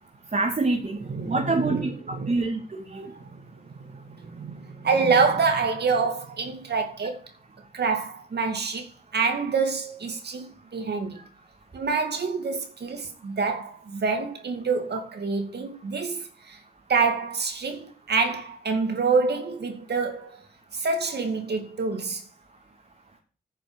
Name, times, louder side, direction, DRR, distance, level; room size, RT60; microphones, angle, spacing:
voice 1, 0.3-3.1, right 3 dB, 45° right, 2.8 m, -26 dB
voice 2, 1.1-2.4 2.9-7.2 7.7-11.2 11.7-16.6 16.9-20.5 20.7-22.2, right 4 dB, 70° right, 2.3 m, -27 dB
9.9 x 7.2 x 6.4 m
cardioid pair, 45°, 18 cm